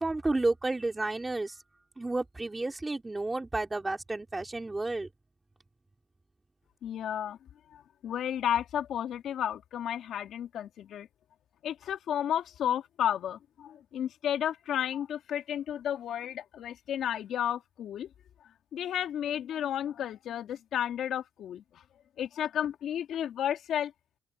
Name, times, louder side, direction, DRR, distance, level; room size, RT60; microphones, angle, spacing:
voice 1, 0.0-1.6 2.0-5.1, right 2 dB, 20° right, 3.0 m, -31 dB
voice 2, 6.8-7.4 7.7-11.1 11.6-18.1 18.7-21.8 22.2-23.9, left 10 dB, 75° left, 2.8 m, -32 dB
open air
cardioid pair, 90°, 0 cm